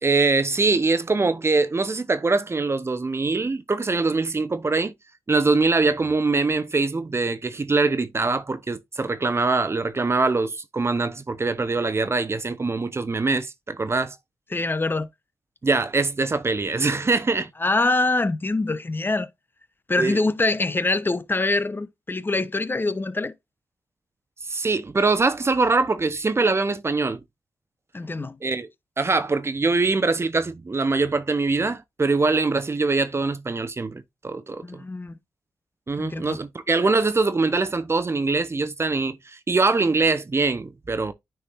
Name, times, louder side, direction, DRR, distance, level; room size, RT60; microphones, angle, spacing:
voice 1, 0.0-4.9 5.3-14.2 15.6-17.5 20.0-20.2 24.4-27.2 28.4-28.7 29.0-34.8 35.9-41.1, right 3 dB, 35° right, 0.9 m, -23 dB
voice 2, 14.5-15.1 17.6-19.3 19.9-23.3 27.9-28.4 34.6-35.2 36.0-36.4, left 2 dB, 30° left, 1.0 m, -24 dB
9.8 x 4.7 x 2.6 m
supercardioid pair, 45°, 7 cm